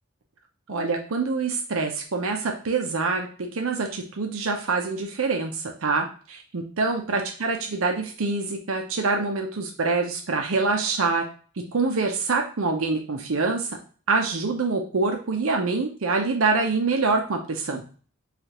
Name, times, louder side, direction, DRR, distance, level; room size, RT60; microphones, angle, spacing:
voice 1, 0.7-3.3 3.5-11.2 11.7-13.7 14.1-17.8, right 3 dB, 75° right, 3 dB, 0.6 m, -25 dB
4.9 x 2.4 x 2.9 m, 0.40 s
head